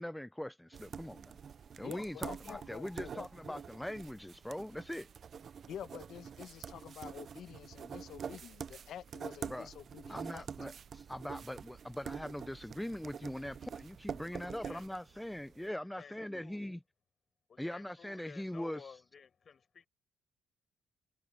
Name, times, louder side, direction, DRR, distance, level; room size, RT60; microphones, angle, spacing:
voice 1, 0.0-1.4 1.8-5.1 9.5-9.7 10.1-16.8 17.6-18.8, left 1 dB, 5° left, 0.7 m, -41 dB
sound 1, 0.7-15.6, right 7 dB, 50° right, 0.5 m, -46 dB
sound 2, 1.4-4.7, left 2 dB, 20° left, 1.7 m, -59 dB
voice 2, 1.8-3.6 5.7-10.5, left 10 dB, 70° left, 1.1 m, -48 dB
voice 3, 14.3-14.8 15.5-15.6 16.0-16.6 17.5-19.9, left 6 dB, 45° left, 7.3 m, -54 dB
cardioid pair, 90°, 0 cm